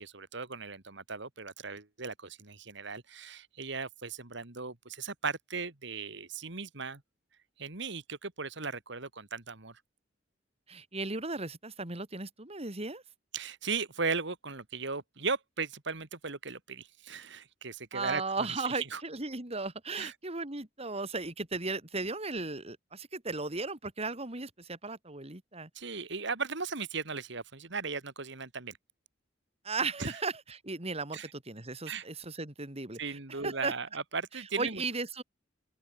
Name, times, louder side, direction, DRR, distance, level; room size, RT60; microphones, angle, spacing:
voice 1, 0.0-7.0 7.6-9.7 13.3-18.2 18.6-19.0 20.0-20.1 25.7-28.8 30.0-30.2 31.1-31.3 31.9-32.0 33.0-34.8, right 4 dB, 65° right, 2.5 m, -37 dB
voice 2, 10.7-13.0 17.9-25.7 29.6-33.7 34.3-35.2, right 3 dB, 35° right, 3.1 m, -36 dB
head